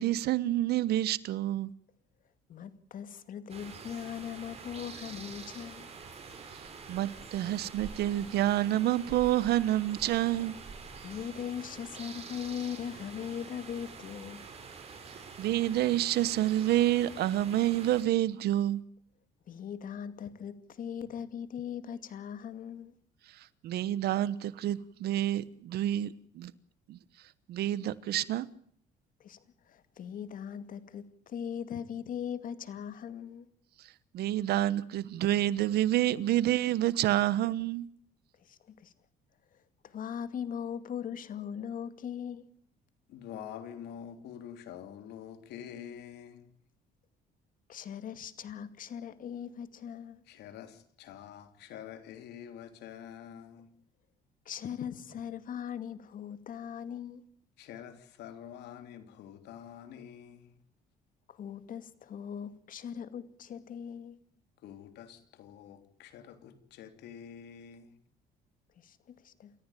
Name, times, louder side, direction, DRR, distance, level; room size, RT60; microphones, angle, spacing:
voice 1, 0.0-1.7 6.5-10.6 15.4-18.8 23.3-26.5 26.9-27.0 27.5-28.5 34.1-37.9, right 13 dB, 70° right, 1.2 m, -28 dB
voice 2, 2.5-5.9 11.0-14.4 19.5-22.9 29.2-33.5 38.4-38.9 39.5-42.5 47.7-50.2 54.5-57.3 61.3-64.2 68.8-69.5, left 8 dB, 55° left, 2.3 m, -40 dB
sound 1, 3.5-18.0, right 5 dB, 35° right, 6.5 m, -46 dB
voice 3, 43.1-46.5 50.3-53.7 57.6-60.6 64.6-67.9, left 9 dB, 80° left, 3.4 m, -47 dB
28.5 x 14.5 x 9.2 m
cardioid pair, 110°, 17 cm